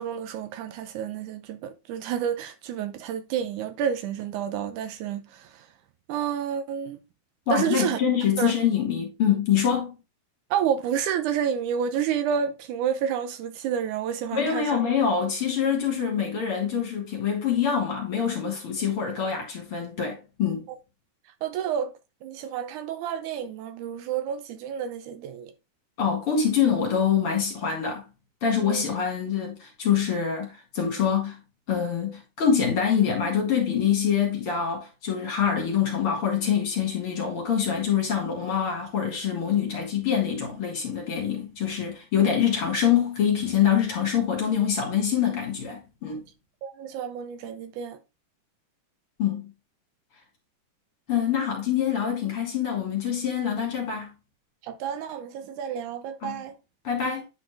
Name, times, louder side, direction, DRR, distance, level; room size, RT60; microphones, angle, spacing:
voice 1, 0.0-5.7 6.1-7.0 7.5-8.0 8.4-8.5 10.5-14.8 21.4-21.9 22.2-25.5 28.6-28.8 46.6-48.0 54.6-56.5, right 8 dB, 80° right, 2.1 m, -30 dB
voice 2, 7.5-9.9 14.3-20.7 26.0-28.0 28.4-31.4 31.7-46.2 49.2-49.5 51.1-54.1 56.2-56.4 56.8-57.2, left 8 dB, 50° left, 2.6 m, -25 dB
9.1 x 4.3 x 3.3 m
omnidirectional pair, 3.6 m